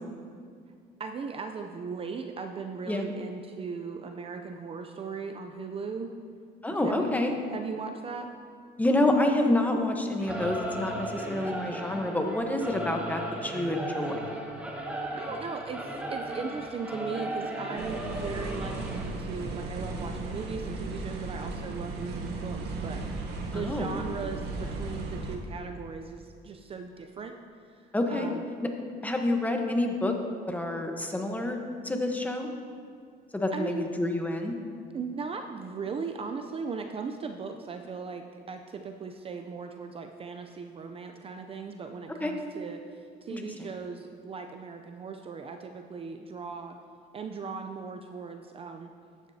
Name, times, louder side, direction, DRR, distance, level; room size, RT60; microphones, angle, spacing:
voice 1, 1.0-6.1 6.7-7.1 7.5-8.3 15.1-27.4 28.1-28.4 33.5-33.9 34.9-46.8 47.1-48.9, right 5 dB, 35° right, 5 dB, 0.5 m, -38 dB
voice 2, 6.6-7.3 8.8-14.1 23.5-23.9 27.9-28.3 29.0-30.1 30.5-32.5 33.3-34.5 42.2-42.3 43.3-43.7, left 1 dB, 10° left, 3 dB, 1.0 m, -28 dB
Singing / Musical instrument, 10.2-19.1, right 1 dB, 10° right, 1.2 m, -36 dB
sound 1, 17.8-25.4, right 3 dB, 75° right, 1.1 m, -36 dB
12.5 x 9.5 x 2.8 m, 2.2 s
cardioid pair, 110°, 17 cm